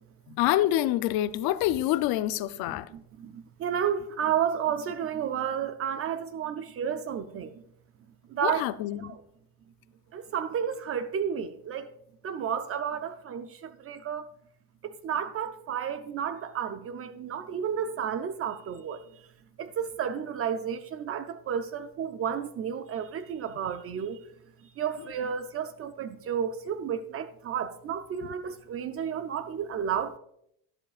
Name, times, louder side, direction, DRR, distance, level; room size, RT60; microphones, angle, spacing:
voice 1, 0.3-2.9 8.4-9.1, left 14 dB, 50° left, 0.5 m, -26 dB
voice 2, 2.9-7.5 8.3-8.6 9.0-9.2 10.1-11.9 12.2-14.3 14.8-19.0 19.6-24.2 24.8-30.2, right 8 dB, 30° right, 0.5 m, -32 dB
12.0 x 11.5 x 2.4 m
cardioid pair, 130°, 47 cm